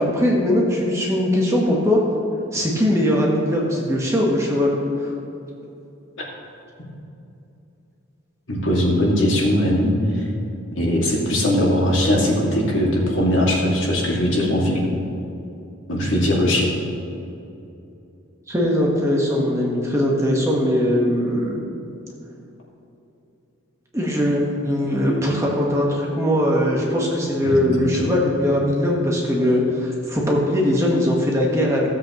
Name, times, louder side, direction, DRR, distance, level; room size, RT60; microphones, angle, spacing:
voice 1, 0.0-2.0 2.5-5.1 18.5-21.5 23.9-31.9, left 1 dB, 15° right, -3 dB, 1.3 m, -20 dB
voice 2, 8.5-10.2 10.7-14.9 15.9-16.7 27.4-28.1, equal, 65° left, -3 dB, 2.3 m, -20 dB
16.5 x 7.8 x 3.1 m, 2.8 s
head